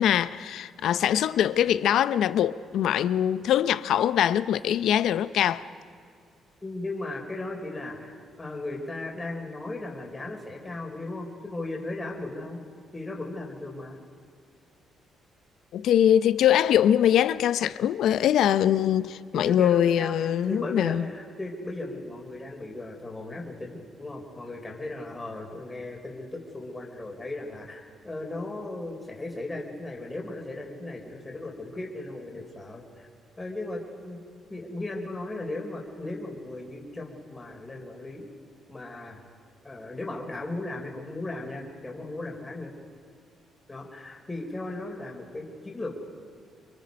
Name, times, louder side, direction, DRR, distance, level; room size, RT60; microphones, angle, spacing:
voice 1, 0.0-5.6 15.7-21.0, left 10 dB, 75° left, 0.6 m, -23 dB
voice 2, 6.6-12.6 12.9-14.0 19.3-33.1 33.4-34.2 34.5-38.2 38.7-39.2 39.6-42.7 43.7-46.0, left 2 dB, 20° left, 3.8 m, -36 dB
28.0 x 23.0 x 5.3 m
cardioid pair, 90°, 0 cm